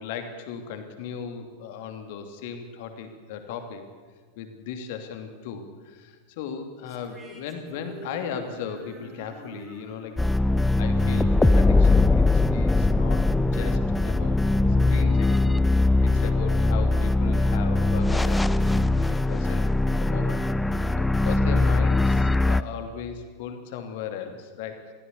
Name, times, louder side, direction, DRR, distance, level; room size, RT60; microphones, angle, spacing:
voice 1, 0.0-3.8 4.4-10.1 10.8-12.2 12.5-14.4 14.8-15.6 16.0-20.4 21.0-24.9, left 7 dB, 50° left, 6 dB, 2.8 m, -37 dB
sound 1, 6.9-12.2, right 3 dB, 20° right, 5.1 m, -47 dB
sound 2, 10.2-22.6, left 2 dB, 5° left, 0.6 m, -21 dB
22.0 x 16.0 x 8.4 m, 1.5 s
figure-of-eight pair, 90°, 0 cm